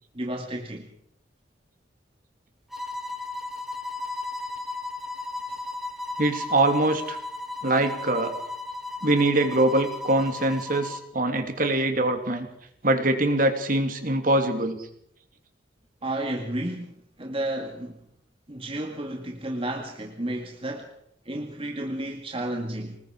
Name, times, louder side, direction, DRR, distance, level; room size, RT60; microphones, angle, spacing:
voice 1, 0.1-0.9 5.5-5.6 16.0-18.0 18.5-20.9 21.3-23.0, right 1 dB, 30° right, 2 dB, 2.1 m, -32 dB
sound 1, 2.7-11.1, left 3 dB, ahead, 1.7 m, -35 dB
voice 2, 6.2-7.2 7.6-8.3 9.0-12.5 12.8-14.8, right 2 dB, 50° right, 6 dB, 2.9 m, -23 dB
25.5 x 20.5 x 5.0 m, 0.70 s
head